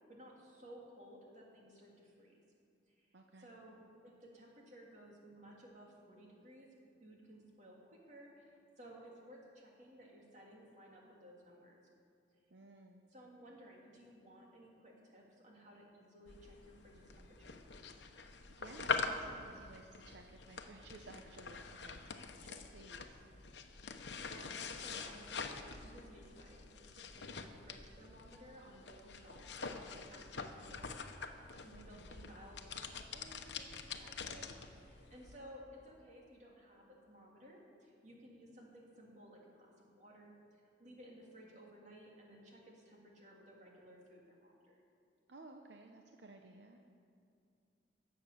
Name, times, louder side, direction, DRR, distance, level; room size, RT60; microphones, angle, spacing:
voice 1, 0.1-2.4 2.9-6.7 7.0-11.8 13.1-17.6 24.0-34.5 34.7-44.8, equal, 40° right, -2 dB, 2.6 m, -57 dB
voice 2, 3.1-3.5 12.5-13.0 18.5-23.2 31.7-32.1 45.3-46.8, right 2 dB, 75° right, 3 dB, 0.8 m, -56 dB
sound 1, 16.3-35.4, left 4 dB, 75° left, 0.9 m, -45 dB
17.0 x 7.6 x 6.9 m, 2.5 s
head